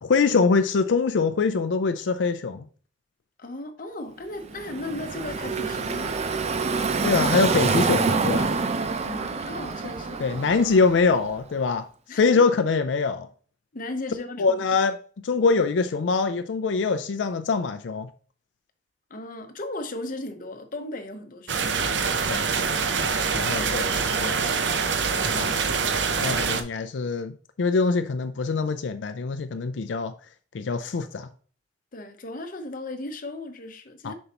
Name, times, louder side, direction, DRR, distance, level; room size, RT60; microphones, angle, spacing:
voice 1, 0.0-2.6 7.0-8.5 10.2-11.9 12.1-13.3 14.4-14.9 15.2-18.1 22.3-22.4 23.3-24.4 25.2-25.6 26.2-27.3 27.6-30.1 30.5-31.3 34.0-34.1, left 4 dB, 90° left, 0.5 m, -23 dB
voice 2, 3.4-6.3 9.0-10.2 12.1-12.4 13.7-14.6 19.1-21.7 25.1-25.9 31.9-34.1, left 2 dB, 50° left, 0.9 m, -36 dB
Car passing by / Traffic noise roadway noise, 4.4-11.4, right 4 dB, 35° right, 0.5 m, -27 dB
sound 1, 21.5-26.6, right 5 dB, 75° right, 0.7 m, -25 dB
6.8 x 5.4 x 2.9 m
head